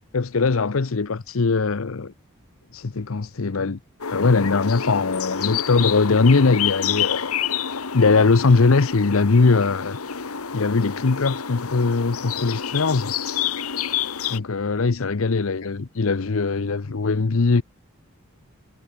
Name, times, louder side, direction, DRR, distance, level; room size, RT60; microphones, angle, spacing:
voice 1, 0.1-2.1 2.7-3.8 4.1-7.3 7.9-10.0 10.5-13.1 14.3-17.6, left 4 dB, 70° left, 0.7 m, -20 dB
sound 1, 4.0-14.4, left 8 dB, 90° left, 1.4 m, -28 dB
head